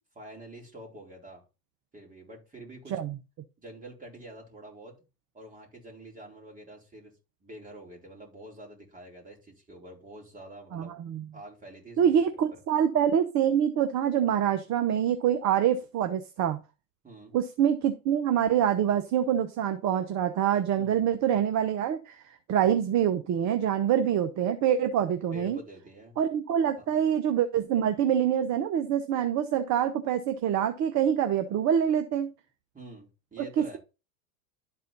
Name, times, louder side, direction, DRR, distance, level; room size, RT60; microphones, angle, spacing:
voice 1, 0.2-1.4 1.9-3.0 3.6-5.0 5.3-7.1 7.4-10.9 11.3-12.2 17.0-17.4 20.8-21.0 22.5-22.8 25.3-26.2 26.8-26.9 32.7-33.8, right 1 dB, 15° right, -1 dB, 4.1 m, -47 dB
voice 2, 10.7-11.2 12.0-16.6 17.3-22.2 22.5-25.6 26.2-32.3 33.4-33.8, right 9 dB, 35° right, 9 dB, 0.9 m, -25 dB
11.5 x 4.4 x 4.0 m, 0.29 s
hypercardioid pair, 95°, 49 cm